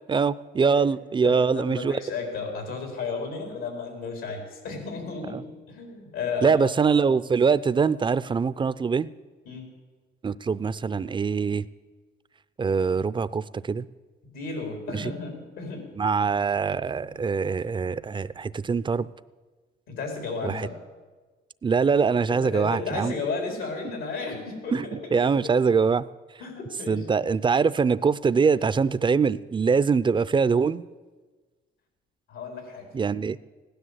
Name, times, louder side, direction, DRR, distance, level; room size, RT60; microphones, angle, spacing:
voice 1, 0.1-2.0 6.4-9.1 10.2-11.7 12.6-13.9 14.9-15.1 16.0-19.1 20.4-20.7 21.6-23.1 24.7-24.9 25.1-26.0 26.9-30.8 32.9-33.4, right 5 dB, 25° right, 16 dB, 0.5 m, -23 dB
voice 2, 1.2-6.6 9.4-9.7 14.3-15.9 19.9-20.7 22.3-24.8 25.0-25.1 26.4-27.1 28.3-28.4 32.3-32.9, left 4 dB, 90° left, 4 dB, 4.2 m, -33 dB
16.0 x 10.5 x 8.1 m, 1.3 s
cardioid pair, 90°, 20 cm